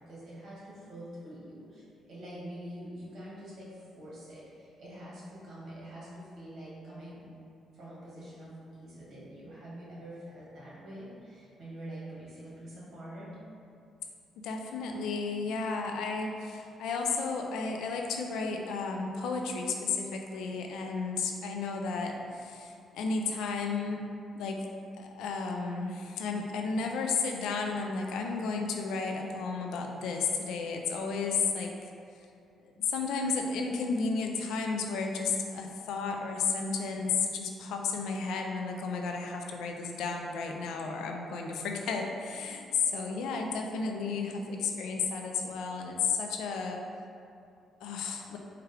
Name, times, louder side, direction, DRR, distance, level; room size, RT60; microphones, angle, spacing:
voice 1, 0.0-1.8 2.1-7.3 7.7-13.3, right 1 dB, 60° right, -8 dB, 1.5 m, -45 dB
voice 2, 14.4-24.0 24.3-24.6 25.0-31.9 32.6-46.8 47.8-48.4, left 4 dB, 85° left, 2 dB, 0.4 m, -33 dB
4.4 x 2.4 x 3.2 m, 2.5 s
cardioid pair, 90°, 0 cm